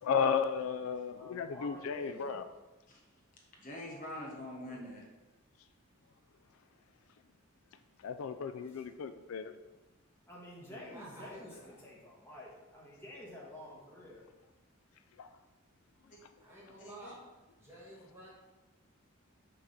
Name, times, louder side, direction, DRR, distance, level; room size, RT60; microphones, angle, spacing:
voice 1, 0.0-2.5 8.0-9.5 15.2-15.3, left 6 dB, 75° left, 10 dB, 0.3 m, -34 dB
voice 2, 1.1-2.4 10.3-11.5 11.8-14.2, left 1 dB, 10° left, -5 dB, 1.6 m, -49 dB
voice 3, 3.6-5.0 10.7-11.3 16.1-16.2 16.8-17.1, left 1 dB, 40° left, -2 dB, 1.2 m, -46 dB
voice 4, 4.6-4.9 10.8-11.9 16.4-17.2 17.6-18.3, right 1 dB, 10° right, -6 dB, 1.8 m, -52 dB
6.2 x 3.7 x 5.7 m, 1.1 s
head